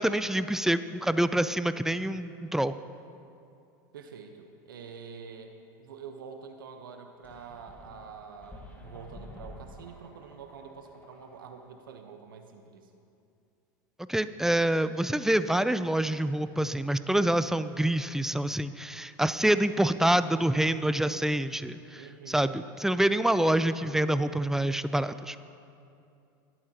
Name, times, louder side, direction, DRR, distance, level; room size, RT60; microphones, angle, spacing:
voice 1, 0.0-2.7 14.1-25.4, right 1 dB, 5° right, 13 dB, 0.3 m, -26 dB
voice 2, 3.9-12.9 21.9-22.5, right 6 dB, 90° right, 6 dB, 1.0 m, -46 dB
sound 1, 7.2-11.8, left 1 dB, 15° left, 1.9 m, -50 dB
26.0 x 8.7 x 2.9 m, 2.6 s
hypercardioid pair, 100°, 11 cm